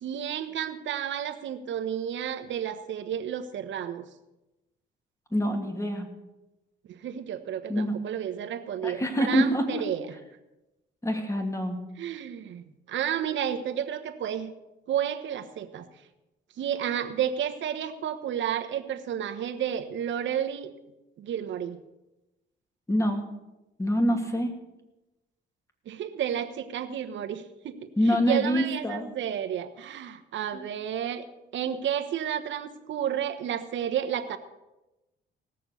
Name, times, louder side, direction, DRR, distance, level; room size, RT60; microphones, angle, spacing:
voice 1, 0.0-4.0 6.8-10.0 12.0-14.5 14.9-15.9 16.6-20.7 21.2-21.8 25.9-31.3 31.5-34.4, right 9 dB, 70° right, 7 dB, 1.2 m, -31 dB
voice 2, 5.3-6.1 7.7-7.9 8.8-9.8 11.0-11.8 22.9-23.3 23.8-24.6 28.0-29.1 30.5-30.7, equal, 15° left, 4 dB, 2.5 m, -26 dB
18.0 x 7.0 x 6.9 m, 1.0 s
cardioid pair, 90°, 20 cm